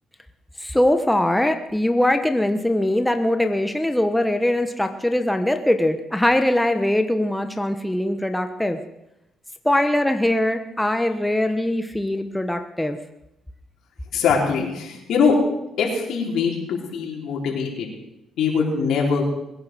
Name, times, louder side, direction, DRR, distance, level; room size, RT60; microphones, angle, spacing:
voice 1, 0.6-8.8 9.6-13.0, left 1 dB, 5° left, 7 dB, 1.1 m, -21 dB
voice 2, 14.1-15.3 15.8-17.9 18.4-19.2, left 5 dB, 75° left, -1 dB, 4.6 m, -22 dB
21.5 x 10.5 x 6.4 m, 0.90 s
cardioid pair, 90°, 0 cm